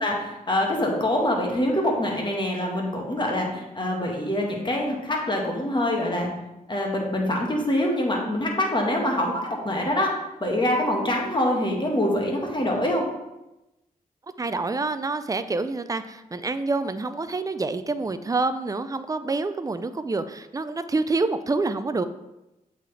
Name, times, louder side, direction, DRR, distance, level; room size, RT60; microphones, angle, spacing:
voice 1, 0.0-6.3 6.7-10.1 10.4-13.1, left 1 dB, 30° left, -1 dB, 1.5 m, -25 dB
voice 2, 14.4-22.0, right 3 dB, 25° right, 11 dB, 0.4 m, -27 dB
8.0 x 3.9 x 3.3 m, 0.95 s
cardioid pair, 60°, 15 cm